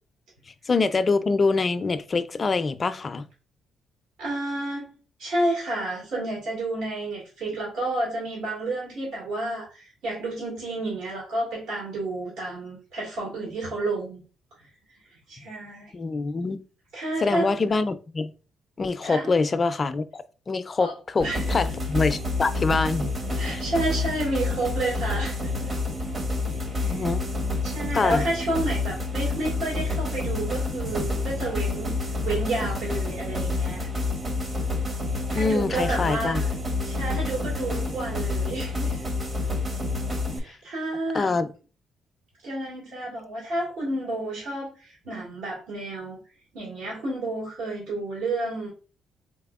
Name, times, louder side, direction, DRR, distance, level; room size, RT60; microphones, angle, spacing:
voice 1, 0.7-3.2 15.9-16.6 17.2-18.3 18.8-20.0 20.5-23.1 23.5-23.6 26.8-27.2 27.9-28.2 35.3-36.4 41.1-41.5, left 4 dB, 35° left, 0.4 m, -25 dB
voice 2, 4.2-4.9 5.2-14.2 15.3-15.9 16.9-17.5 19.0-19.3 20.8-20.9 21.2-21.6 23.4-25.7 26.5-27.1 27.6-31.9 32.2-33.9 35.1-36.5 36.8-39.0 40.4-41.4 42.4-46.2 46.5-48.7, right 2 dB, 85° right, 1.9 m, -30 dB
sound 1, 21.2-40.4, left 2 dB, 40° right, 0.9 m, -28 dB
4.1 x 3.3 x 2.4 m
cardioid pair, 90°, 0 cm